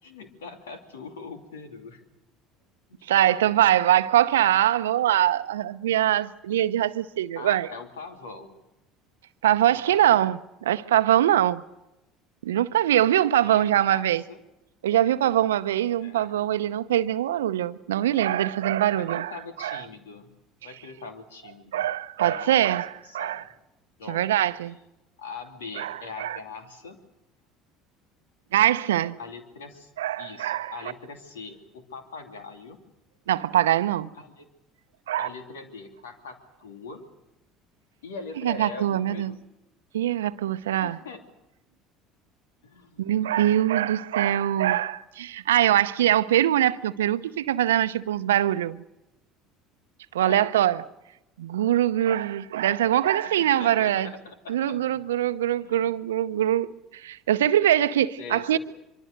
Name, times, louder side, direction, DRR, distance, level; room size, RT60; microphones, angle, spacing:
voice 1, 0.0-2.0 2.9-3.1 7.3-8.6 9.7-10.2 13.4-14.4 16.0-16.4 18.9-20.4 20.6-21.9 22.2-22.8 23.0-23.5 24.0-24.3 24.7-24.8 25.2-27.0 29.2-29.9 30.2-32.8 34.2-34.5 35.2-37.1 38.0-39.4 40.8-41.2 42.6-43.0 50.2-50.5 53.2-55.0 55.6-55.9 58.2-58.6, left 4 dB, 80° left, 2.8 m, -42 dB
voice 2, 3.1-7.7 9.4-11.6 12.4-14.2 14.8-19.3 19.6-19.8 21.7-23.4 24.1-24.8 25.8-26.4 28.5-29.2 30.0-30.7 33.3-34.1 35.1-35.3 38.4-39.3 39.9-41.0 43.0-48.8 50.1-50.8 51.4-54.1 54.5-56.7 56.9-58.6, right 12 dB, 80° right, 0.7 m, -23 dB
24.5 x 24.5 x 6.6 m
hypercardioid pair, 65°, 0 cm